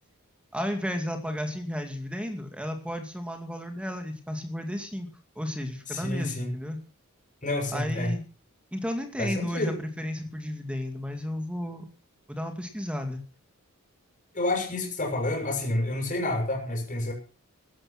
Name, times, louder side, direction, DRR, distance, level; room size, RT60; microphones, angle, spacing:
voice 1, 0.5-5.1 5.4-6.8 7.7-8.2 8.7-11.8 12.3-13.2, equal, 5° right, 6 dB, 2.3 m, -33 dB
voice 2, 5.9-6.5 7.4-8.1 9.2-9.8 14.3-17.1, left 2 dB, 35° left, 1 dB, 7.6 m, -29 dB
15.0 x 12.5 x 6.0 m, 0.38 s
head